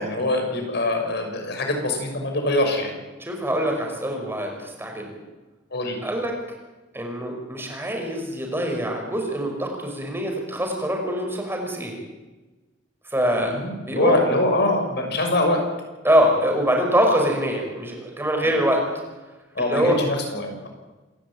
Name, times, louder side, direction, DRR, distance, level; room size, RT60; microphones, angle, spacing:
voice 1, 0.0-2.9 5.7-6.0 13.4-15.6 18.4-18.5 19.5-20.7, left 1 dB, 60° left, 3 dB, 6.3 m, -24 dB
voice 2, 3.2-5.1 6.0-6.4 6.9-11.9 13.1-13.5 13.9-14.2 16.0-18.8 19.6-20.0, equal, 15° right, 2 dB, 5.7 m, -23 dB
27.5 x 13.0 x 9.0 m, 1.2 s
head